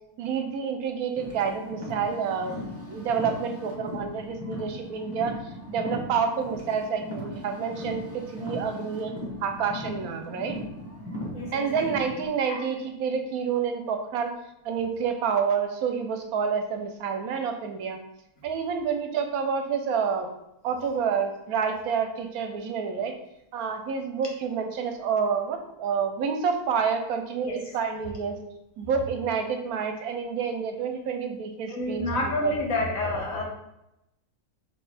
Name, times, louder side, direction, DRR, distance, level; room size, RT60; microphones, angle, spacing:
voice 1, 0.2-2.6 2.9-5.4 5.7-9.1 9.4-10.6 11.5-14.3 14.6-18.0 18.4-20.3 20.6-23.2 23.5-28.4 28.8-32.6, right 6 dB, 80° right, 6 dB, 1.1 m, -28 dB
Car, 1.1-12.3, left 1 dB, 15° right, 0.6 m, -38 dB
voice 2, 31.7-33.4, left 2 dB, 65° left, -2 dB, 1.4 m, -28 dB
4.4 x 3.3 x 3.4 m, 0.84 s
omnidirectional pair, 1.6 m